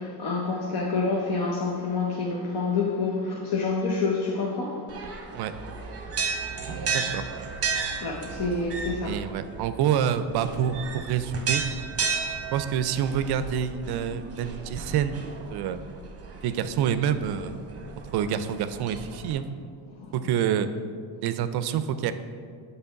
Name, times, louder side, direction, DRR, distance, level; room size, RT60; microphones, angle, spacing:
voice 1, 0.0-4.8 7.5-7.6 8.0-9.2, left 4 dB, 50° left, -1 dB, 0.9 m, -27 dB
sound 1, 4.9-19.3, right 5 dB, 30° right, 0.9 m, -34 dB
voice 2, 6.9-7.2 9.0-11.6 12.5-15.2 15.5-15.8 16.4-17.5 18.1-19.5 20.1-20.7 21.2-22.1, right 9 dB, 60° right, 12 dB, 0.5 m, -27 dB
6.8 x 3.4 x 5.7 m, 2.1 s
cardioid pair, 120°, 46 cm